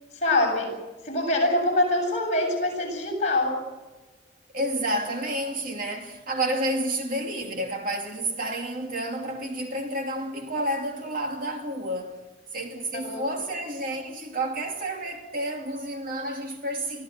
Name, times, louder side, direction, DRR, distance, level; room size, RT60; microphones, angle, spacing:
voice 1, 0.1-0.7 1.0-3.6 13.0-13.2, left 2 dB, 35° left, 7.5 m, -24 dB
voice 2, 4.5-17.0, right 1 dB, 45° right, 2.7 m, -30 dB
24.5 x 15.5 x 7.9 m
head